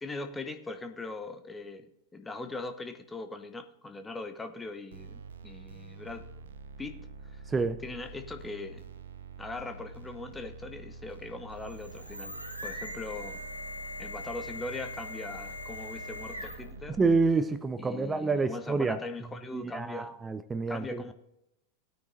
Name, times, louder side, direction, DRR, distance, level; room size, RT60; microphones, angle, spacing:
voice 1, 0.0-6.2 6.8-7.0 7.2-7.4 7.8-8.8 9.4-12.4 12.6-13.5 14.0-17.0 17.8-20.1 20.7-21.1, left 2 dB, 10° left, 7 dB, 0.9 m, -40 dB
sound 1, 4.9-17.3, right 3 dB, 65° right, 0.7 m, -47 dB
sound 2, 11.5-16.8, left 1 dB, 90° left, 1.3 m, -41 dB
voice 2, 16.9-19.0 19.5-21.1, right 4 dB, 15° right, 14 dB, 0.5 m, -28 dB
17.5 x 9.3 x 2.6 m, 0.87 s
figure-of-eight pair, 90°, 0 cm